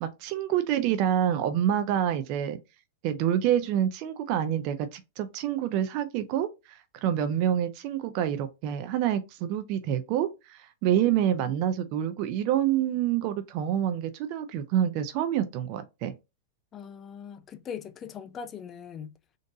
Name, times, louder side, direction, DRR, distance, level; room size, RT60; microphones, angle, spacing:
voice 1, 0.0-2.6 3.0-16.1, right 10 dB, 45° right, 0.4 m, -27 dB
voice 2, 16.7-19.1, left 7 dB, 25° left, 0.4 m, -40 dB
3.8 x 2.5 x 2.6 m
hypercardioid pair, 145°, 0 cm